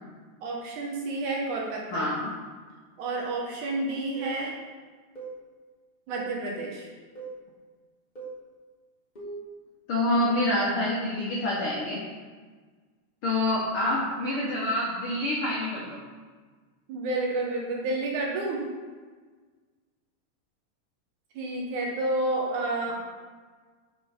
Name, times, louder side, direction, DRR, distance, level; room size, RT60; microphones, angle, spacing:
voice 1, 0.4-2.1 3.0-4.6 6.1-6.9 16.9-18.7 21.4-22.9, right 2 dB, 70° right, -1 dB, 2.2 m, -30 dB
voice 2, 1.9-2.3 9.9-12.0 13.2-16.0, left 1 dB, 75° left, -5 dB, 1.2 m, -27 dB
sound 1, 4.2-4.4 5.2-5.4 6.2-6.4 7.2-7.4 8.2-8.4 9.2-9.5, right 4 dB, 40° left, 0.6 m, -39 dB
6.3 x 6.0 x 5.1 m, 1.4 s
omnidirectional pair, 4.1 m